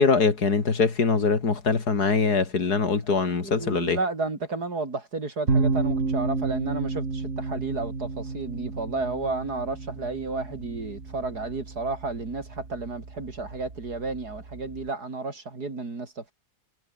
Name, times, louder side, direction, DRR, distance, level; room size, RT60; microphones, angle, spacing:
voice 1, 0.0-4.0, left 4 dB, 75° left, 3.2 m, -23 dB
voice 2, 3.4-16.3, right 3 dB, 75° right, 4.5 m, -32 dB
sound 1, 5.5-14.9, right 3 dB, 50° right, 3.2 m, -31 dB
omnidirectional pair, 1.7 m